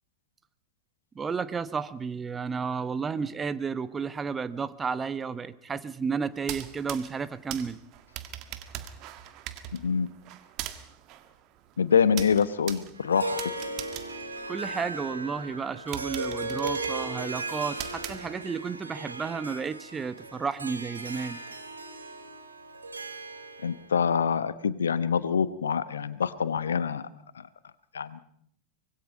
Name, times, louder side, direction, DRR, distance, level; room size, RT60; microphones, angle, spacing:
voice 1, 1.1-7.8 14.5-21.4, right 5 dB, 20° right, 15 dB, 1.1 m, -32 dB
sound 1, 6.3-15.1 15.5-15.6 15.9-18.7, right 12 dB, 45° right, 1.7 m, -42 dB
voice 2, 9.7-10.1 11.8-13.3 23.6-27.1 27.9-28.2, left 6 dB, 75° left, 16 dB, 1.0 m, -25 dB
Harp, 13.0-23.9, right 2 dB, 80° right, 2.0 m, -37 dB
24.5 x 21.0 x 5.3 m, 0.67 s
figure-of-eight pair, 90°, 0 cm